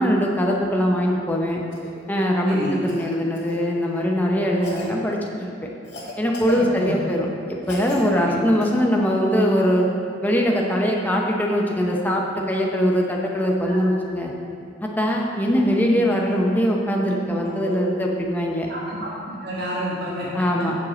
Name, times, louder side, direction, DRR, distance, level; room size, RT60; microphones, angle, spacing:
voice 1, 0.0-1.6 2.1-5.5 6.2-9.9 10.2-14.3 15.0-18.7 20.3-20.8, equal, 10° left, -1 dB, 0.8 m, -21 dB
Cough, 1.7-1.9 2.9-3.6 4.6-4.9 5.8-7.1 7.6-8.0 8.6-8.7 10.5-10.6, left 1 dB, 75° left, 2.0 m, -36 dB
voice 2, 2.5-2.8 4.6-4.7 6.5-7.0 8.2-8.4 13.6-13.8 17.6-17.8 18.7-20.7, equal, 65° right, -6 dB, 1.6 m, -30 dB
7.4 x 4.7 x 6.2 m, 2.4 s
head